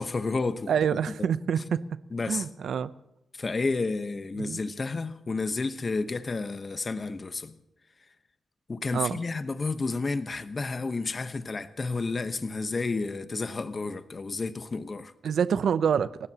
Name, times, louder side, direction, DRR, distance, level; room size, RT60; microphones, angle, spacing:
voice 1, 0.0-0.7 2.1-2.5 3.4-7.6 8.7-15.1, left 3 dB, 35° left, 1.1 m, -31 dB
voice 2, 0.7-1.8 2.3-2.9 4.4-4.6 8.9-9.2 15.2-16.3, right 7 dB, 80° right, 0.7 m, -26 dB
29.5 x 16.0 x 3.0 m
cardioid pair, 90°, 0 cm